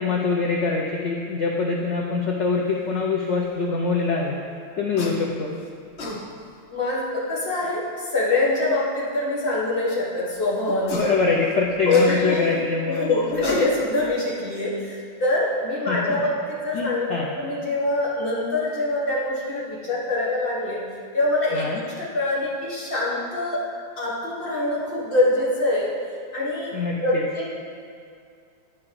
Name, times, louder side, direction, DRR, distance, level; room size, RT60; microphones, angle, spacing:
voice 1, 0.0-4.4 4.8-5.5 10.9-13.1 15.9-16.2 16.7-17.3 21.5-21.8 26.7-27.2, left 4 dB, 90° left, -1 dB, 0.6 m, -24 dB
sound 1, 5.0-5.2 5.7-6.2 7.6-7.7 10.7-11.2 11.5-12.5 13.2-14.0, left 2 dB, 45° left, 0.9 m, -31 dB
voice 2, 6.7-11.0 11.9-12.5 12.8-20.8 21.1-23.7 24.0-26.0 26.3-26.7 27.0-27.5, left 2 dB, 30° left, -6 dB, 1.6 m, -24 dB
10.0 x 4.9 x 4.6 m, 2.3 s
omnidirectional pair, 2.0 m